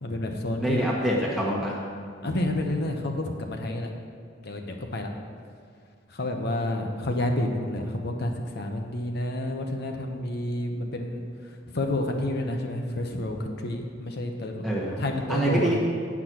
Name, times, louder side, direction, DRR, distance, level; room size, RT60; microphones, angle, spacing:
voice 1, 0.0-1.0 2.2-3.9 4.4-5.1 6.1-14.6 15.0-15.7, left 1 dB, 55° left, 3 dB, 0.9 m, -29 dB
voice 2, 0.6-1.8 14.6-15.0 15.3-15.8, right 1 dB, ahead, -5 dB, 1.3 m, -25 dB
8.6 x 6.0 x 6.1 m, 2.2 s
head